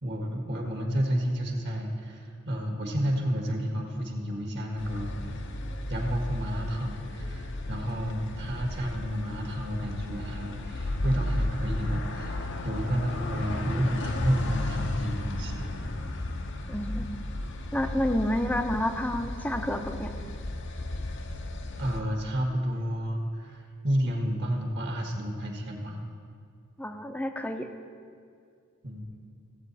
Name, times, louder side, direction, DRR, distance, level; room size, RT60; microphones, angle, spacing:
voice 1, 0.0-5.1 5.9-15.9 21.8-26.0 28.8-29.1, equal, 55° right, 1 dB, 1.5 m, -31 dB
sound 1, 4.8-22.0, left 1 dB, 60° left, 0.7 m, -34 dB
voice 2, 16.7-17.1 17.7-20.1 26.8-27.7, left 1 dB, 5° left, 6 dB, 0.6 m, -29 dB
15.5 x 8.1 x 4.1 m, 2.3 s
head